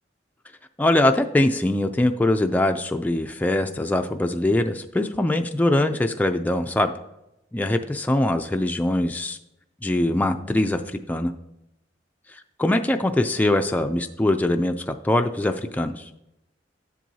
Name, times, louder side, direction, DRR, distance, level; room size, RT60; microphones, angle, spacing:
voice 1, 0.8-6.9 7.5-9.4 9.8-10.8 11.1-11.3 12.6-16.1, left 1 dB, 10° left, 5 dB, 0.3 m, -22 dB
12.5 x 7.5 x 2.7 m, 0.89 s
head